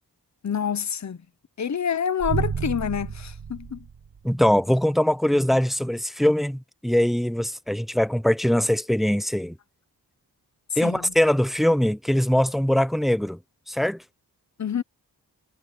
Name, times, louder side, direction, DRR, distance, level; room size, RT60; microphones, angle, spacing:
voice 1, 0.4-1.2 1.6-3.9 10.8-11.1 14.6-14.8, left 7 dB, 45° left, 0.9 m, -27 dB
sound 1, 2.2-4.5, right 6 dB, 80° right, 7.3 m, -31 dB
voice 2, 4.2-9.6 10.8-13.4 13.7-14.0, left 1 dB, ahead, 0.5 m, -22 dB
wide cardioid pair, 140°, 38 cm